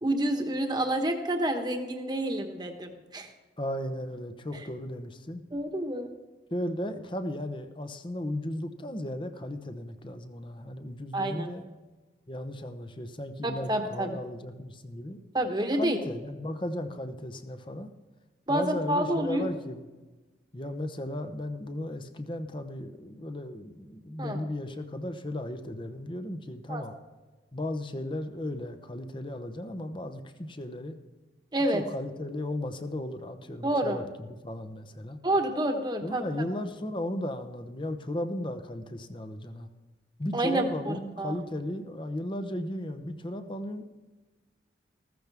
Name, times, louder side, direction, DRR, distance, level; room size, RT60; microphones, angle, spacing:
voice 1, 0.0-3.3 5.5-6.1 11.1-11.5 13.4-14.2 15.3-16.0 18.5-19.5 24.2-24.4 26.7-26.8 31.5-31.9 33.6-34.0 35.2-36.2 40.3-41.3, right 1 dB, 20° right, 5 dB, 1.3 m, -28 dB
voice 2, 3.6-5.4 6.5-11.6 12.3-15.2 15.7-17.9 18.5-19.9 20.5-26.9 27.5-31.0 31.7-35.2 36.0-39.7 40.2-43.9, left 1 dB, 25° left, 7 dB, 0.9 m, -35 dB
15.0 x 14.0 x 3.5 m, 1.2 s
head